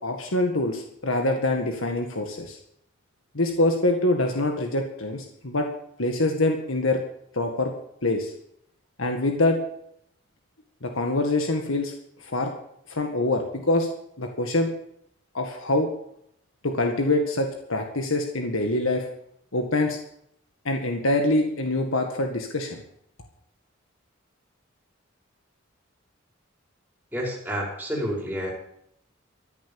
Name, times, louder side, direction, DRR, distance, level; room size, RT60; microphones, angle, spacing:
voice 1, 0.0-2.6 3.3-5.7 6.0-7.0 7.3-7.7 8.0-8.3 9.0-9.6 10.8-11.9 12.2-12.5 12.9-13.9 14.2-14.7 15.3-15.9 16.6-19.0 19.5-20.0 20.7-22.8, left 2 dB, 80° left, 4 dB, 1.9 m, -25 dB
voice 2, 27.1-28.5, equal, 10° right, -3 dB, 5.2 m, -29 dB
14.5 x 10.5 x 7.1 m, 0.72 s
head